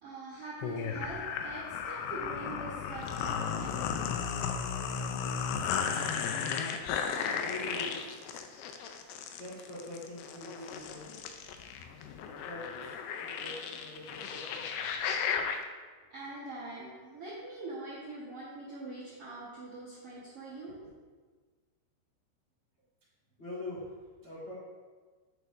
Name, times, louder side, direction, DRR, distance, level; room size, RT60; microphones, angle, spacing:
voice 1, 0.0-4.1 16.1-20.9, right 2 dB, 65° right, -10 dB, 1.4 m, -43 dB
sound 1, 0.6-15.6, left 7 dB, 80° left, 2.5 m, -35 dB
voice 2, 7.3-8.3 9.4-11.0 12.2-12.9 13.2-14.6 23.4-23.8 24.2-24.5, left 1 dB, 55° left, -9 dB, 0.7 m, -44 dB
8.0 x 6.8 x 2.6 m, 1.4 s
omnidirectional pair, 4.8 m